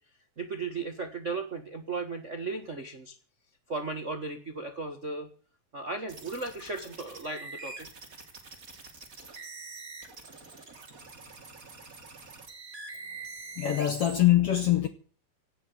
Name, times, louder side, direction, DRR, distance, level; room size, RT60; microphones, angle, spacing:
voice 1, 0.4-3.2 3.7-5.3 5.7-7.9, right 3 dB, 65° right, 0.7 m, -36 dB
sound 1, 6.1-14.2, right 3 dB, 25° right, 2.7 m, -45 dB
voice 2, 13.5-14.9, left 13 dB, 70° left, 1.4 m, -23 dB
17.5 x 8.2 x 9.1 m
omnidirectional pair, 4.0 m